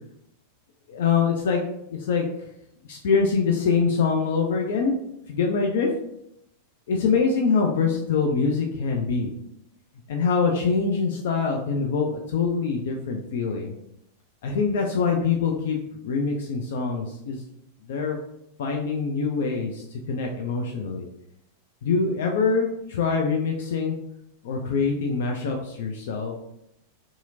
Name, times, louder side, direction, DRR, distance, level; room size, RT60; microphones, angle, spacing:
voice 1, 0.9-1.6 1.9-2.2 2.9-4.9 5.3-5.9 6.9-9.3 10.1-13.7 14.4-15.8 16.0-17.4 17.9-18.2 18.6-21.0 21.8-24.0 24.4-26.4, left 5 dB, 55° left, 1 dB, 0.3 m, -24 dB
2.7 x 2.4 x 2.6 m, 0.78 s
figure-of-eight pair, 90°, 0 cm